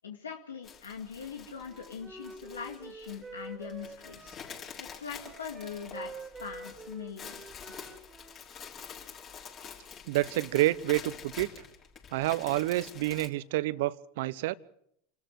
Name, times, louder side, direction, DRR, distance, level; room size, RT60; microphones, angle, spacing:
voice 1, 0.0-4.4 4.8-7.4, left 7 dB, 90° left, 3 dB, 2.2 m, -42 dB
sound 1, 0.6-13.3, left 7 dB, 35° left, 5.8 m, -47 dB
Wind instrument woodwind instrument, 1.6-4.7 5.1-8.4, right 3 dB, 15° right, 2.6 m, -47 dB
voice 2, 10.1-11.5 12.1-14.5, right 17 dB, 65° right, 18 dB, 0.9 m, -28 dB
27.5 x 14.0 x 7.8 m, 0.72 s
hypercardioid pair, 95°, 0 cm